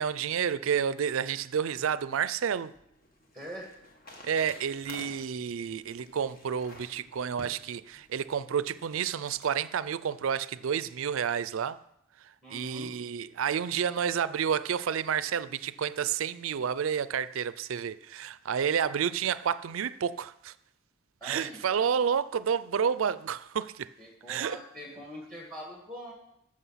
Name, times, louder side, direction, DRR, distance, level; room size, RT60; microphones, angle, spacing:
voice 1, 0.0-2.7 4.2-11.8 12.5-20.5 21.2-23.9 24.3-24.6, right 7 dB, 75° right, 0.4 m, -30 dB
sound 1, 2.5-9.5, left 1 dB, 45° left, 1.6 m, -52 dB
voice 2, 3.3-3.7 12.4-12.9 21.2-21.6 24.0-26.1, equal, 5° left, 1.8 m, -43 dB
14.0 x 6.6 x 5.6 m
head